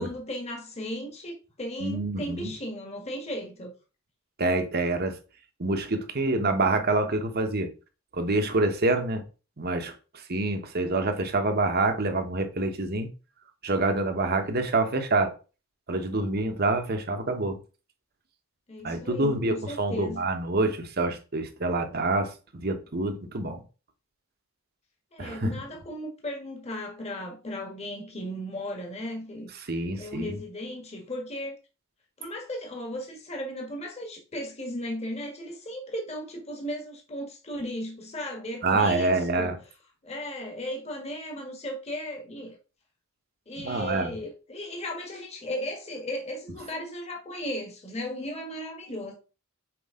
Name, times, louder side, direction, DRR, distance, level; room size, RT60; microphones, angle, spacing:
voice 1, 0.0-3.7 14.2-14.4 18.7-20.3 25.1-29.5 30.0-31.6 32.2-39.6 40.0-42.6 43.5-49.1, equal, 30° left, 1.5 m, -36 dB
voice 2, 1.8-2.5 4.4-5.2 5.6-7.7 8.1-9.2 9.6-9.9 10.3-13.1 13.6-15.3 15.9-17.6 18.8-23.6 25.2-25.5 29.7-30.4 38.6-39.5 43.6-44.1, right 2 dB, 50° right, 1.1 m, -26 dB
6.1 x 4.6 x 3.7 m
head